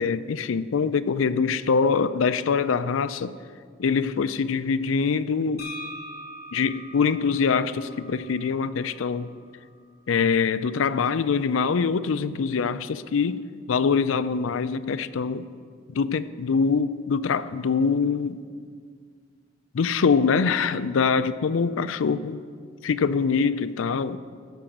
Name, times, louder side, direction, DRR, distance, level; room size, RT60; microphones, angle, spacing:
voice 1, 0.0-3.3 3.8-5.6 6.5-9.3 10.1-15.5 15.9-18.4 19.7-22.4 22.8-24.2, left 5 dB, 90° left, 14 dB, 0.4 m, -24 dB
sound 1, 5.6-9.4, equal, 55° left, 2.3 m, -42 dB
14.0 x 5.8 x 7.3 m, 2.1 s
head